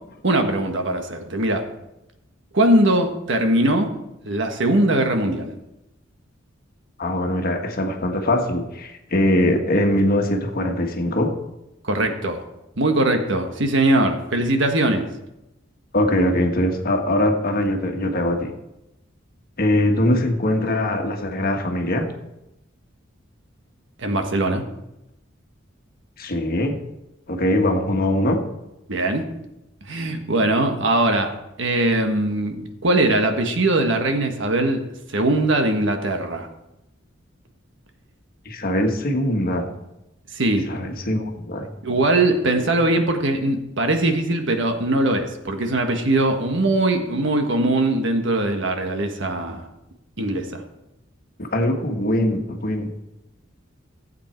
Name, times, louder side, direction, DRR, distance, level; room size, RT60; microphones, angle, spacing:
voice 1, 0.2-1.7 2.5-3.9 4.2-5.5 11.8-12.4 12.8-15.1 24.0-24.6 28.9-29.2 29.9-34.8 35.1-36.5 40.3-40.7 41.8-49.7 50.2-50.6, right 1 dB, 65° right, 5 dB, 1.4 m, -21 dB
voice 2, 7.0-11.4 15.9-18.5 19.6-22.1 26.2-26.8 27.3-28.4 38.4-39.7 40.7-41.7 51.4-52.9, left 1 dB, 50° left, 4 dB, 1.4 m, -22 dB
15.5 x 8.3 x 4.5 m, 0.92 s
head